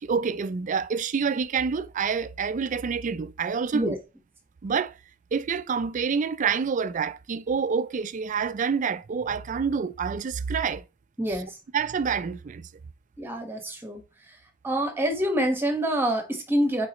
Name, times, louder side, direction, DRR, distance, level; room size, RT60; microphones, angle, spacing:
voice 1, 0.0-4.0 4.6-5.0 5.3-10.8 11.7-12.7, right 6 dB, 40° right, 0.4 m, -27 dB
voice 2, 11.2-11.5 13.2-14.0 14.6-16.9, right 1 dB, 10° right, 1.4 m, -26 dB
8.6 x 4.0 x 3.0 m
head